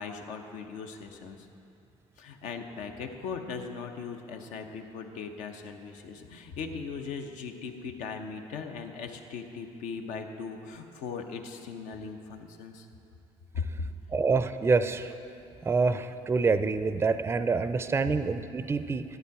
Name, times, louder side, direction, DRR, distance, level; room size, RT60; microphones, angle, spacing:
voice 1, 0.0-1.5 2.2-12.9 13.5-13.9 18.1-18.2, left 5 dB, 85° left, 5 dB, 0.8 m, -39 dB
voice 2, 14.1-15.1 15.6-19.0, right 4 dB, 20° right, 11 dB, 0.4 m, -26 dB
11.5 x 8.1 x 4.7 m, 2.8 s
supercardioid pair, 85°, 12 cm